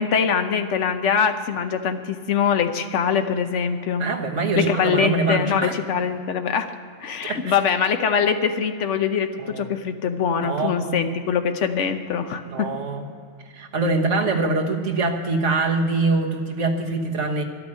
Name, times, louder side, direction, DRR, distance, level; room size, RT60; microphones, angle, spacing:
voice 1, 0.0-4.1 4.6-6.7 7.0-12.7, left 7 dB, 75° left, 7 dB, 1.2 m, -23 dB
voice 2, 4.0-5.7 7.2-7.6 9.4-9.7 10.4-11.0 12.5-13.0 13.5-17.4, right 3 dB, 75° right, 2 dB, 1.7 m, -24 dB
12.0 x 9.0 x 8.7 m, 2.3 s
omnidirectional pair, 1.3 m